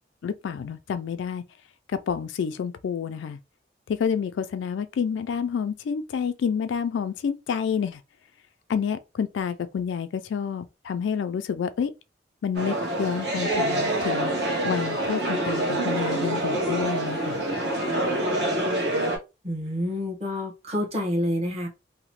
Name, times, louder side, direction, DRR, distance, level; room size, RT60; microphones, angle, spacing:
voice 1, 0.2-1.4 2.1-3.4 3.9-8.0 8.7-11.9 12.4-14.3 14.6-17.4, left 7 dB, 80° left, 0.3 m, -29 dB
sound 1, 12.5-19.2, right 1 dB, 60° right, 1.0 m, -26 dB
voice 2, 19.4-21.7, left 1 dB, 35° right, 0.9 m, -28 dB
2.9 x 2.1 x 2.9 m
head